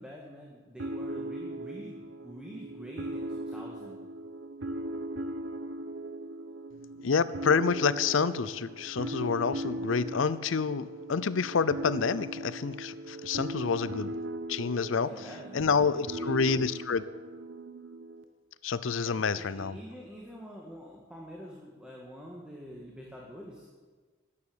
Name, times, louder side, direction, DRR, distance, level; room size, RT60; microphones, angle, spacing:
voice 1, 0.0-4.0 15.0-16.6 19.0-23.7, equal, 5° right, -2 dB, 1.7 m, -46 dB
sound 1, 0.8-18.2, right 1 dB, 70° right, 1.0 m, -39 dB
voice 2, 7.0-14.1 14.5-15.1 15.5-17.0 18.6-19.8, left 5 dB, 80° left, 16 dB, 0.6 m, -28 dB
13.0 x 9.8 x 8.6 m, 1.4 s
head